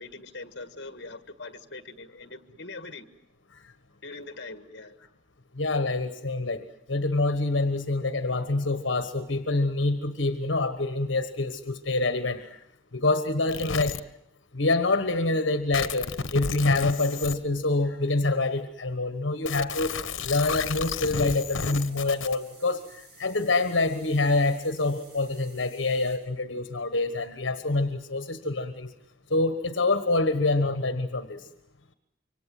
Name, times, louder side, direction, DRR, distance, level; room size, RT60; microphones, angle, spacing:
voice 1, 0.0-3.1 4.0-5.0, left 3 dB, 55° left, 1.7 m, -42 dB
voice 2, 5.5-6.6 6.9-12.6 12.9-14.0 14.5-20.0 20.2-28.9 29.3-31.5, left 2 dB, 75° left, 1.3 m, -26 dB
sound 1, 13.5-14.0 15.7-17.3 19.5-22.4, left 5 dB, 90° left, 1.1 m, -32 dB
sound 2, 20.6-26.2, right 3 dB, 55° right, 6.4 m, -53 dB
26.5 x 24.5 x 7.7 m
head